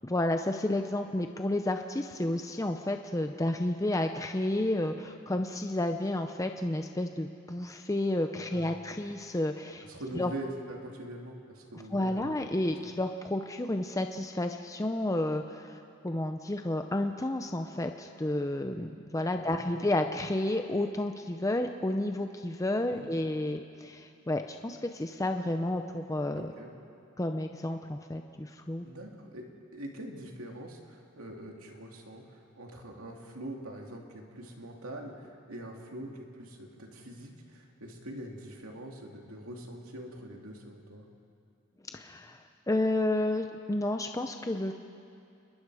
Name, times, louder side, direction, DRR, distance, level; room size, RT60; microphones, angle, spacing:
voice 1, 0.0-9.9 10.2-10.3 11.9-26.5 27.2-28.9 41.9-42.4 42.7-44.7, left 1 dB, 15° left, 5 dB, 0.6 m, -31 dB
voice 2, 8.5-8.9 9.8-12.4 12.7-12.9 19.4-19.9 22.9-23.1 26.3-26.7 28.8-29.5 29.7-41.1, right 1 dB, 85° right, 1 dB, 2.6 m, -43 dB
28.5 x 21.5 x 4.9 m, 2.5 s
head